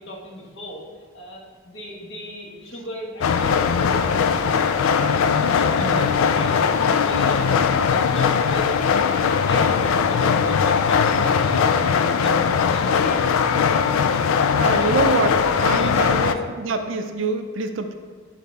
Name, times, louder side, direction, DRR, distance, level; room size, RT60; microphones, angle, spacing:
voice 1, 0.0-5.1 5.4-6.7 7.0-7.6 7.9-8.8 9.2-11.6 11.9-13.3 14.8-14.9 15.7-15.9 16.3-16.4, right 1 dB, 60° left, -2 dB, 1.4 m, -37 dB
sound 1, 3.2-16.3, left 6 dB, 85° left, 0.3 m, -20 dB
voice 2, 5.8-6.1 7.5-7.7 13.9-14.3 14.6-17.9, right 3 dB, 65° right, 7 dB, 0.5 m, -26 dB
9.4 x 4.0 x 3.3 m, 1.5 s
head